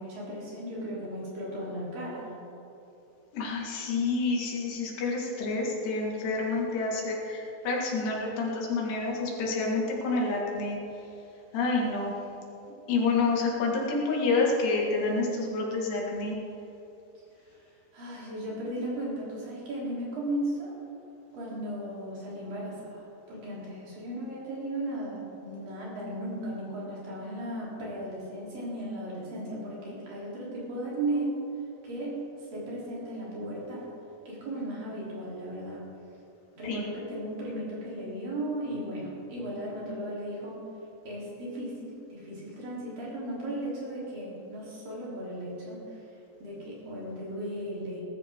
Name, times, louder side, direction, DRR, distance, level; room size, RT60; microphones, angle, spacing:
voice 1, 0.0-2.3 17.5-17.6 17.9-20.7 21.3-31.4 31.8-32.2 32.5-33.9 34.3-35.8 36.5-40.6 41.0-46.0 46.4-48.0, right 1 dB, 55° right, -6 dB, 5.0 m, -36 dB
voice 2, 3.3-10.8 11.5-12.1 12.9-16.4 36.6-36.8, left 3 dB, 75° left, -2 dB, 3.9 m, -28 dB
19.5 x 13.0 x 3.6 m, 2.8 s
omnidirectional pair, 4.9 m